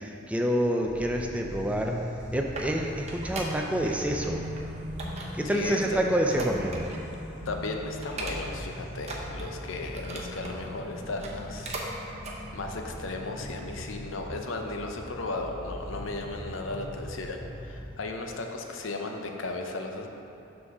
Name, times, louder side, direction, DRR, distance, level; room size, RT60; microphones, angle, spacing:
voice 1, 0.0-2.0 2.3-4.4 5.3-6.9, right 1 dB, 5° right, 1 dB, 0.4 m, -27 dB
sound 1, 0.8-17.8, equal, 55° left, 1.6 m, -40 dB
sound 2, 2.0-4.0 4.2-4.6 5.0-7.1 7.5-7.6 8.0-8.7 9.0-10.6 11.1-11.9 12.2-12.4 12.9-13.0, right 2 dB, 35° right, 0.8 m, -39 dB
voice 2, 5.5-6.0 7.5-11.8 12.5-20.1, left 2 dB, 75° left, 3 dB, 0.6 m, -35 dB
6.1 x 3.9 x 6.0 m, 2.9 s
head